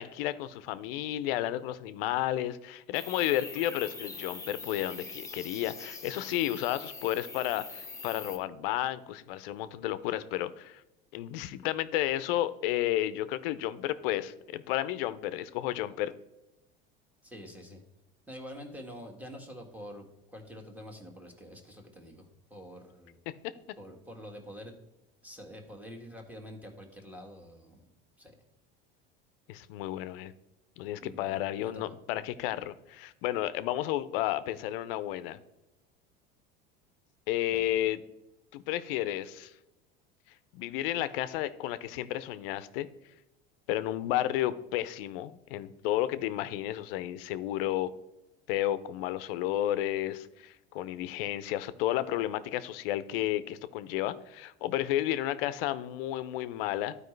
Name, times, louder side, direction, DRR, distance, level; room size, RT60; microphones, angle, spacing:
voice 1, 0.0-10.8 11.1-16.1 23.3-23.4 29.5-30.3 30.8-35.4 37.3-38.0 38.5-39.5 40.5-42.9 43.7-47.9 48.5-57.0, left 13 dB, 75° left, 14 dB, 0.6 m, -32 dB
sound 1, 2.9-8.4, left 3 dB, 10° left, 1.0 m, -43 dB
voice 2, 17.2-17.8 18.3-23.2 23.8-24.7 25.2-27.8 28.2-28.3 31.0-31.4 31.7-31.8 37.5-37.7, equal, 5° right, 2 dB, 1.6 m, -46 dB
12.0 x 4.9 x 3.2 m, 0.96 s
supercardioid pair, 95°, 29 cm